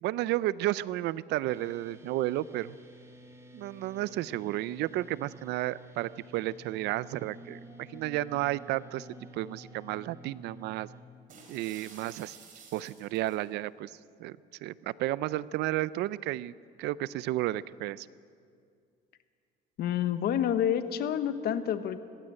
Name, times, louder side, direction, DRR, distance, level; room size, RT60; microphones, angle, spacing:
voice 1, 0.0-2.8 3.5-9.1 9.3-10.9 11.5-12.4 12.7-16.5 16.8-18.1, right 16 dB, 85° right, 19 dB, 0.5 m, -32 dB
sound 1, 1.5-11.0, right 1 dB, 15° right, 2.2 m, -52 dB
sound 2, 7.1-12.3, left 2 dB, 25° left, 1.9 m, -54 dB
sound 3, 11.3-13.4, right 5 dB, 50° right, 4.8 m, -52 dB
voice 2, 19.8-22.0, left 9 dB, 70° left, 11 dB, 1.2 m, -28 dB
20.0 x 16.0 x 8.9 m, 2.3 s
cardioid pair, 110°, 17 cm